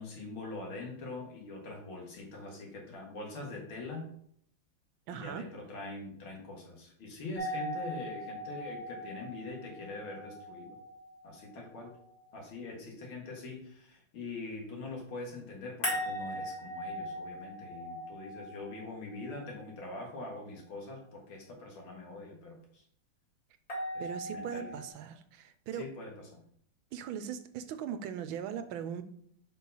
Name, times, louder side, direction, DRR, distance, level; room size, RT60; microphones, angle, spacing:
voice 1, 0.0-4.1 5.1-10.8 11.2-11.9 12.3-22.8 23.9-24.8 25.7-26.4, left 2 dB, 90° left, 2.5 m, -43 dB
voice 2, 5.1-5.5 24.0-25.9 26.9-29.0, right 8 dB, 80° right, 1.4 m, -39 dB
sound 1, 7.4-12.3 15.8-19.9 23.7-24.9, equal, 45° left, 2.8 m, -40 dB
5.1 x 4.6 x 5.4 m
omnidirectional pair, 2.2 m